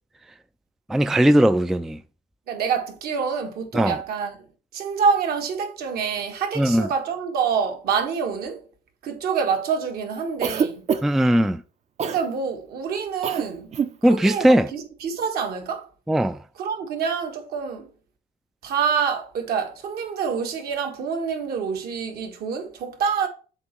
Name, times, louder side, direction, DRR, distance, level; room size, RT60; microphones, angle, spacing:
voice 1, 0.9-2.0 3.7-4.0 6.6-6.9 11.0-11.6 14.0-14.7 16.1-16.4, right 1 dB, ahead, 0.3 m, -19 dB
voice 2, 2.5-4.4 4.7-8.6 9.0-10.9 12.0-13.7 14.1-15.9 16.6-17.9 18.6-23.3, right 6 dB, 65° right, 1.6 m, -26 dB
Cough, 10.4-11.3 12.0-12.2 13.2-13.5 13.7-14.0, right 6 dB, 40° right, 0.7 m, -24 dB
7.7 x 2.9 x 5.8 m
cardioid pair, 110°, 17 cm